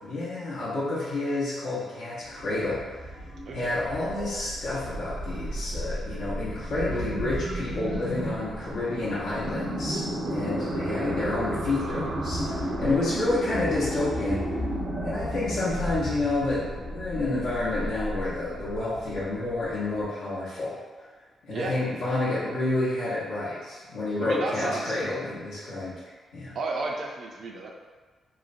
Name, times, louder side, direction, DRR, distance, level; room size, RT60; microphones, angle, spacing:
voice 1, 0.0-2.8 3.5-10.0 10.3-14.4 15.0-20.8 21.4-26.0 26.3-26.6, left 2 dB, 85° left, -10 dB, 0.7 m, -29 dB
sound 1, 2.2-20.0, equal, 85° right, 1.0 m, -33 dB
voice 2, 10.2-11.1 21.5-21.8 24.2-25.0 26.5-27.7, right 3 dB, 60° right, -1 dB, 0.4 m, -33 dB
3.1 x 2.0 x 2.4 m, 1.3 s
cardioid pair, 100°, 0 cm